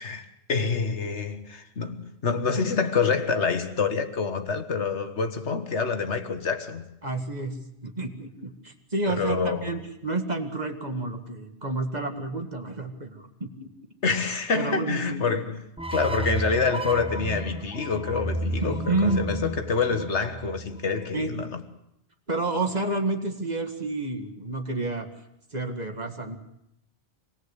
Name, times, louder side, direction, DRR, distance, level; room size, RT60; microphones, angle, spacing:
voice 1, 0.0-6.9 9.1-9.7 14.0-15.6 15.9-21.6, left 5 dB, 90° left, 1.8 m, -27 dB
voice 2, 7.0-7.6 7.8-13.7 14.5-15.2 18.6-19.2 21.1-21.4 22.3-25.1 25.5-26.4, right 2 dB, 40° right, 2.1 m, -30 dB
sound 1, 15.8-21.0, right 1 dB, 5° right, 0.7 m, -32 dB
26.0 x 18.5 x 8.2 m
omnidirectional pair, 1.1 m